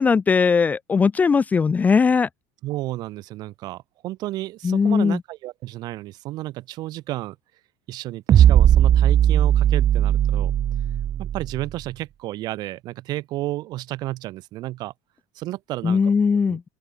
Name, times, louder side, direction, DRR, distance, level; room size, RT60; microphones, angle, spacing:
voice 1, 0.0-2.3 4.6-5.2 15.8-16.6, left 5 dB, 20° left, 0.6 m, -19 dB
voice 2, 2.6-7.4 7.9-10.5 11.2-14.9 15.4-16.0 16.4-16.6, right 16 dB, 50° right, 7.0 m, -32 dB
sound 1, 8.3-11.7, right 10 dB, 35° right, 0.5 m, -17 dB
open air
supercardioid pair, 135°, 9 cm